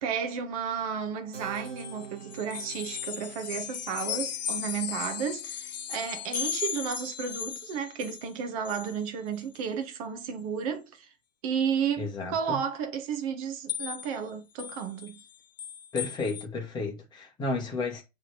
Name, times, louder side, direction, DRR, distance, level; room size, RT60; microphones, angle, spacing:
voice 1, 0.0-11.1 11.4-15.2, right 7 dB, 30° right, 1.0 m, -33 dB
Keyboard (musical), 1.3-7.4, right 6 dB, 75° right, 1.6 m, -49 dB
sound 1, 1.5-8.3 8.6-9.0 9.4-9.6 10.2-10.3 13.7-14.2 14.6-16.4, left 9 dB, 35° left, 0.4 m, -36 dB
voice 2, 12.0-12.6 15.9-18.0, left 3 dB, 10° left, 1.7 m, -32 dB
7.0 x 3.5 x 4.7 m
figure-of-eight pair, 115°, 37 cm